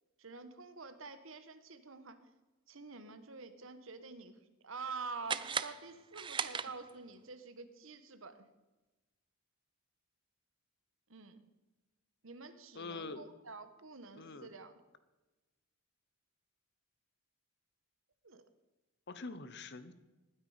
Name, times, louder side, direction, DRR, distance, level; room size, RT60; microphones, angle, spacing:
voice 1, 0.2-2.2 2.7-4.4 4.6-8.4 11.1-11.4 12.2-14.8 18.2-18.4, right 4 dB, 65° right, 10 dB, 1.3 m, -47 dB
sound 1, 5.2-7.2, right 6 dB, 25° right, 0.5 m, -38 dB
voice 2, 12.7-13.2 14.2-14.5 19.1-19.9, left 3 dB, 55° left, 13 dB, 1.0 m, -44 dB
20.0 x 9.8 x 5.0 m, 1.1 s
head